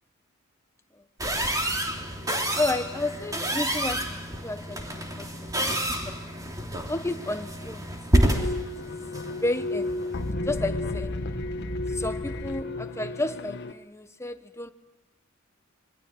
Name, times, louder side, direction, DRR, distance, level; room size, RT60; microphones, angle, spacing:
sound 1, 1.2-10.3, right 1 dB, 15° right, 3.3 m, -29 dB
voice 1, 2.6-5.5 6.0-6.2 6.9-7.9 8.3-8.5 8.8-9.0 9.4-10.0 10.4-11.2 11.9-14.7, left 2 dB, 15° left, 1.3 m, -32 dB
sound 2, 8.3-13.7, left 2 dB, 55° left, 1.6 m, -32 dB
27.0 x 23.5 x 8.8 m
head